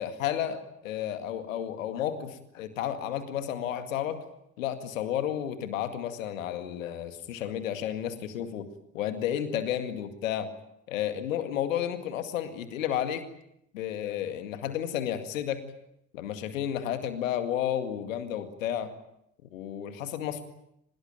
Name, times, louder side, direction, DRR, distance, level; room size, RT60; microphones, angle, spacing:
voice 1, 0.0-4.2 4.6-8.7 8.9-10.5 10.9-13.3 13.7-15.6 16.1-18.9 19.5-20.5, left 10 dB, 80° left, 9 dB, 2.2 m, -32 dB
24.0 x 20.5 x 9.2 m, 0.77 s
figure-of-eight pair, 45°, 39 cm